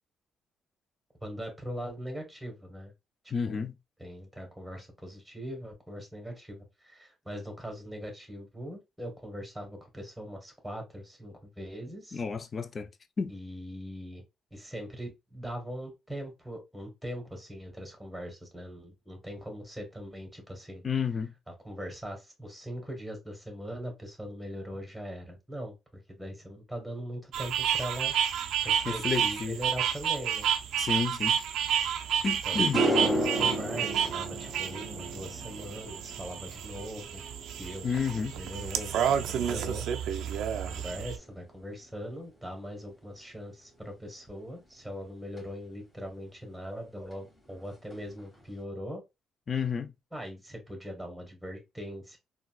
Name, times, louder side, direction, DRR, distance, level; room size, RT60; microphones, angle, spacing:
voice 1, 1.2-2.9 3.5-3.6 4.0-12.2 13.3-14.2 14.5-20.8 21.6-28.1 28.6-30.5 31.8-31.9 32.4-37.2 37.6-37.9 38.3-40.1 40.7-49.0 50.1-52.2, equal, ahead, 1.4 m, -41 dB
voice 2, 3.3-3.7 12.1-12.9 13.2-13.3 20.8-21.3 28.9-29.6 30.8-31.4 32.2-32.8 37.8-38.3 49.5-49.9, left 6 dB, 40° left, 0.4 m, -31 dB
sound 1, 27.3-41.2, right 8 dB, 80° right, 0.4 m, -30 dB
sound 2, 32.0-32.1 32.5-41.0 41.3-41.8 45.4-45.5 47.1-47.2 47.5-47.6 47.9-48.4, right 1 dB, 20° left, 1.4 m, -35 dB
3.8 x 2.2 x 2.4 m
cardioid pair, 90°, 0 cm